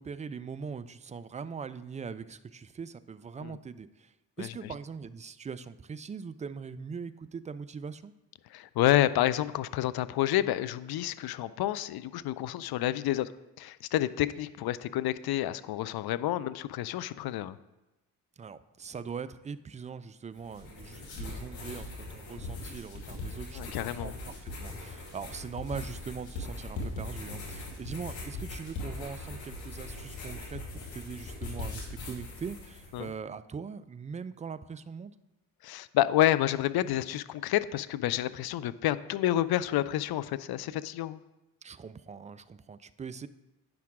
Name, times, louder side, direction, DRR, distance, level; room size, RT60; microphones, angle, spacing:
voice 1, 0.0-8.1 18.4-30.6 30.9-35.1 41.6-43.3, right 6 dB, 15° right, 13 dB, 0.3 m, -41 dB
voice 2, 8.5-13.3 13.6-17.6 23.6-24.1 32.9-33.1 35.6-41.2, left 13 dB, 55° left, 15 dB, 0.5 m, -29 dB
sound 1, 20.4-33.1, left 2 dB, 70° left, 2.3 m, -40 dB
9.3 x 5.8 x 3.7 m, 0.99 s
hypercardioid pair, 45°, 47 cm